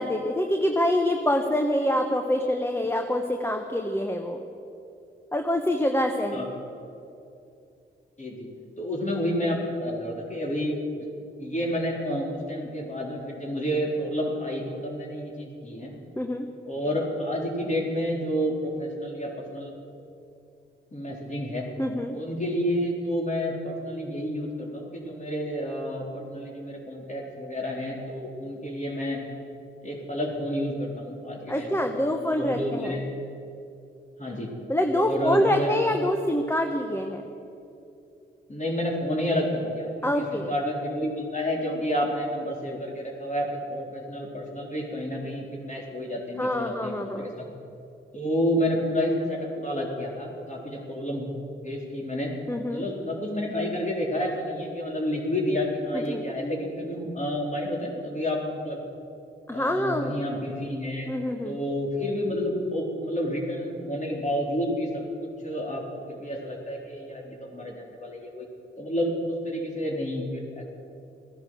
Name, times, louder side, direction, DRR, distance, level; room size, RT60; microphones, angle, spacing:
voice 1, 0.0-4.4 5.3-6.4 16.2-16.5 21.8-22.2 31.5-33.0 34.7-37.2 40.0-40.5 46.4-47.3 52.5-52.8 55.9-56.2 59.5-60.1 61.1-61.6, left 1 dB, 10° left, 4 dB, 1.3 m, -26 dB
voice 2, 8.2-8.5 8.8-11.1 11.4-15.9 16.7-19.7 20.9-21.7 22.1-29.2 29.8-33.1 34.2-34.5 34.9-35.9 38.5-47.4 48.1-51.3 51.6-52.3 52.7-58.8 59.5-61.1 61.4-68.5 68.8-70.8, equal, 35° left, -2 dB, 3.8 m, -30 dB
15.5 x 10.5 x 7.8 m, 2.7 s
supercardioid pair, 40°, 21 cm